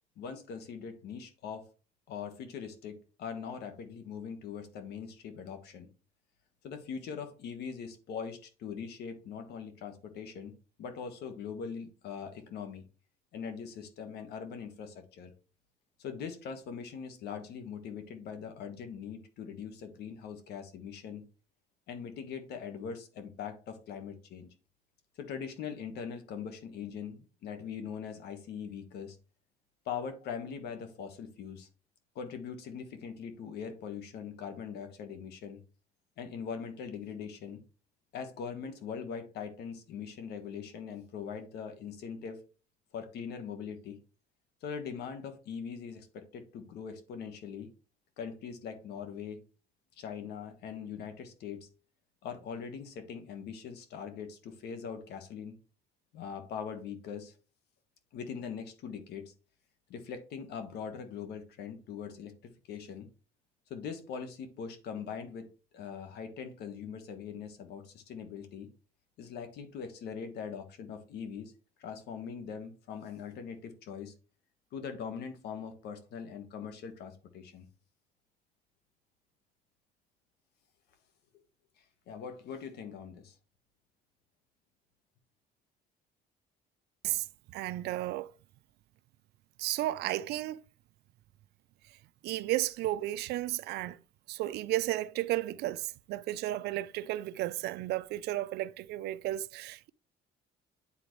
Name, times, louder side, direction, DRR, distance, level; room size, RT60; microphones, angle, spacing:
voice 1, 0.2-1.7 2.1-5.9 6.6-12.8 13.3-15.3 16.0-21.2 21.9-24.5 25.2-29.2 29.8-31.7 32.1-35.6 36.2-37.6 38.1-42.4 42.9-44.0 44.6-47.7 48.2-49.4 50.0-51.7 52.2-55.6 56.1-57.4 58.1-59.3 59.9-63.1 63.7-65.5 65.7-68.7 69.2-71.5 71.8-74.1 74.7-77.7 81.8-83.3, left 6 dB, 75° left, 1.5 m, -41 dB
voice 2, 87.0-88.3 89.6-90.6 92.2-94.0 94.3-99.9, right 15 dB, 75° right, 0.4 m, -33 dB
9.8 x 3.9 x 3.2 m
cardioid pair, 110°, 17 cm